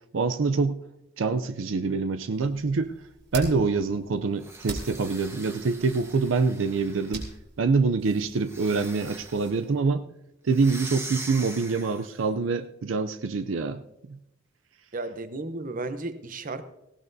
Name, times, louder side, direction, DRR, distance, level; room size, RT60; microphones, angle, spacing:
voice 1, 0.1-0.8 1.2-2.9 3.3-7.2 7.6-10.0 10.4-13.8 14.1-14.2, right 4 dB, 85° right, 10 dB, 0.5 m, -25 dB
sound 1, 2.3-9.5, right 2 dB, 60° right, 3.1 m, -44 dB
sound 2, 4.4-7.3 8.4-9.6 10.5-12.2, right 2 dB, 15° right, 1.2 m, -42 dB
voice 2, 14.9-16.6, right 2 dB, 45° right, 11 dB, 0.8 m, -34 dB
18.0 x 16.5 x 2.7 m, 0.88 s
head